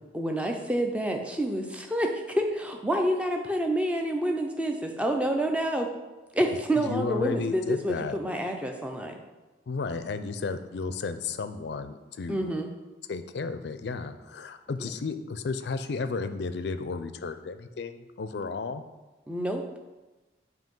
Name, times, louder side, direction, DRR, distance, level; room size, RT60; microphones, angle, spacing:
voice 1, 0.1-5.9 6.3-9.2 12.3-12.7 14.8-14.9 19.3-19.8, right 1 dB, 5° right, 3 dB, 0.5 m, -28 dB
voice 2, 6.9-8.2 9.7-12.4 13.1-18.8, left 4 dB, 60° left, 10 dB, 0.4 m, -33 dB
7.7 x 2.8 x 5.3 m, 1.2 s
head